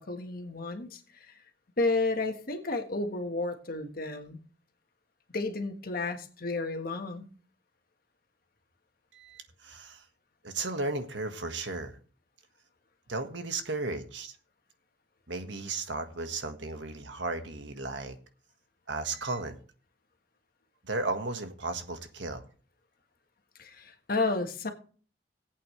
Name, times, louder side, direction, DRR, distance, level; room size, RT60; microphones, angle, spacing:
voice 1, 0.0-1.3 1.8-4.4 5.3-7.3 23.6-24.7, left 3 dB, 55° left, 1.5 m, -32 dB
voice 2, 9.1-10.0 10.4-12.0 13.1-14.4 15.3-18.2 18.9-19.6 20.8-22.4, right 3 dB, 85° right, 1.6 m, -35 dB
19.0 x 8.4 x 3.3 m
head